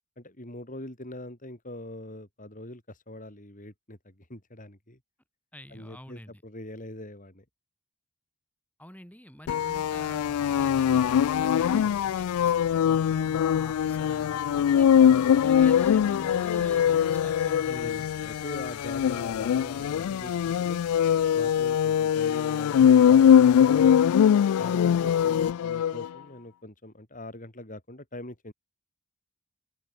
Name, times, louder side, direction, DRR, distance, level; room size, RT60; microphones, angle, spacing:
voice 1, 0.2-5.0 5.7-7.4 17.7-20.9 21.3-24.1 24.6-28.5, left 1 dB, 35° left, 5.8 m, -42 dB
voice 2, 5.5-6.4 8.8-12.3 12.9-18.1, equal, 5° left, 7.9 m, -47 dB
sound 1, 9.5-26.1, left 8 dB, 75° left, 0.3 m, -22 dB
open air
head